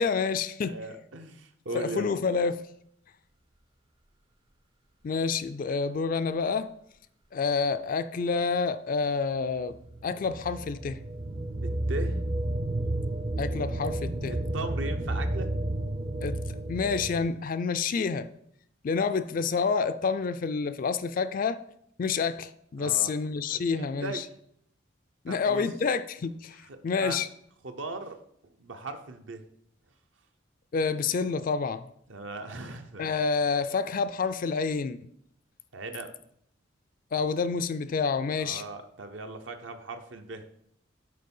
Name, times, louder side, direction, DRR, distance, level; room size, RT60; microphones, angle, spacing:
voice 1, 0.0-0.8 1.7-2.7 5.0-6.7 7.3-9.8 10.0-11.0 13.4-14.3 16.2-18.3 18.8-21.6 22.0-24.2 25.2-27.3 30.7-31.9 33.0-35.1 37.1-38.6, left 5 dB, 45° left, 0.3 m, -28 dB
voice 2, 0.6-2.1 11.6-12.2 13.5-13.6 14.3-15.5 22.8-23.1 23.5-24.2 25.3-25.6 27.0-27.2 27.6-28.2 28.6-29.4 32.1-33.1 35.7-36.1 38.4-40.4, right 2 dB, 65° right, 0.7 m, -38 dB
sound 1, 9.5-17.3, right 1 dB, 25° right, 0.4 m, -31 dB
6.5 x 4.4 x 5.4 m
head